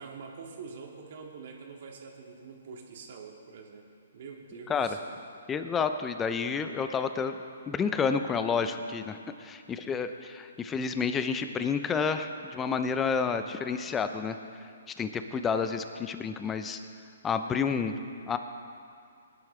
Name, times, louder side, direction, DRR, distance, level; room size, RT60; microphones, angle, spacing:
voice 1, 0.0-3.8 4.1-5.2, right 5 dB, 55° right, 0 dB, 2.2 m, -45 dB
voice 2, 5.5-7.4 7.7-14.4 15.0-16.8 17.2-18.0 18.3-18.4, left 5 dB, 15° left, 8 dB, 0.7 m, -30 dB
20.0 x 11.0 x 3.3 m, 2.3 s
hypercardioid pair, 135°, 0 cm